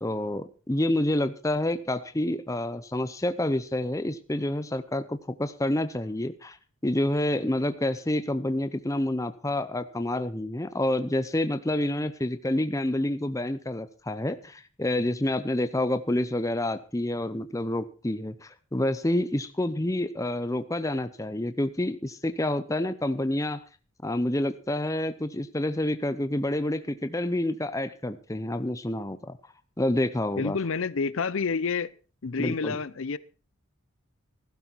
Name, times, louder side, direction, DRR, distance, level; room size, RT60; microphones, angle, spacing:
voice 1, 0.0-6.6 6.8-23.6 24.0-29.4 29.8-30.6 32.4-32.8, left 1 dB, 15° left, 0.6 m, -28 dB
voice 2, 30.4-31.9 32.2-33.2, left 5 dB, 65° left, 0.6 m, -28 dB
15.5 x 12.5 x 4.5 m
head